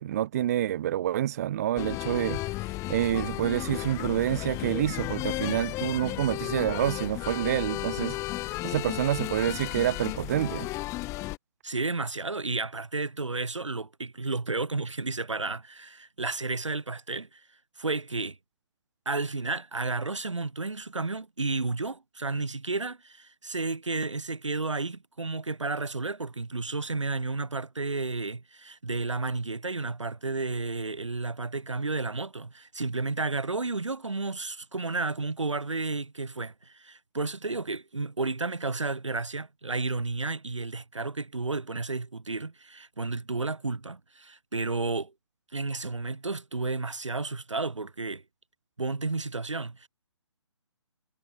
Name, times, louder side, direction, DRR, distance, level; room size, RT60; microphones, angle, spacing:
voice 1, 0.0-2.4 2.9-8.2 8.6-10.7, right 12 dB, 35° right, 0.6 m, -28 dB
sound 1, 1.8-11.4, left 19 dB, 20° left, 3.3 m, -34 dB
voice 2, 11.6-17.4 17.8-18.4 19.0-45.1 45.5-48.2 48.8-49.9, right 3 dB, 85° right, 1.6 m, -32 dB
figure-of-eight pair, 145°, 15 cm